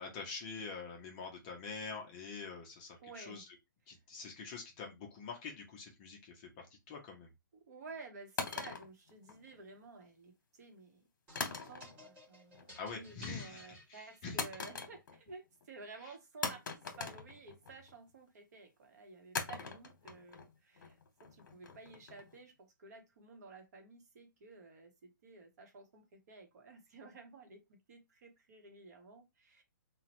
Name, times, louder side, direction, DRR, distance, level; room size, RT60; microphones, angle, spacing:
voice 1, 0.0-3.4 3.9-7.3 12.7-13.6 13.9-14.4, left 4 dB, 20° left, 0.5 m, -45 dB
voice 2, 3.0-3.5 3.9-4.0 7.5-12.6 12.9-16.6 16.9-29.6, right 3 dB, 50° right, 0.8 m, -53 dB
sound 1, 8.4-9.8 11.4-12.2 12.5-13.0 14.4-15.3 15.6-15.7 16.4-17.9 19.3-22.4, left 5 dB, 60° left, 0.9 m, -42 dB
sound 2, 11.3-14.7, left 1 dB, 10° right, 0.8 m, -56 dB
2.9 x 2.1 x 2.9 m
hypercardioid pair, 165°, 11 cm